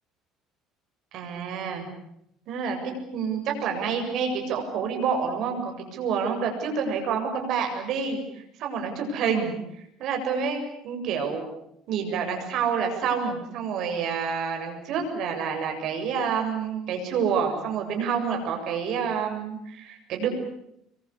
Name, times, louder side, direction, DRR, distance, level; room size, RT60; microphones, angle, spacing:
voice 1, 1.1-1.9 2.5-9.6 10.0-11.5 11.9-20.3, right 6 dB, 50° right, 4 dB, 7.5 m, -28 dB
26.5 x 24.0 x 8.5 m, 0.76 s
cardioid pair, 160°, 0 cm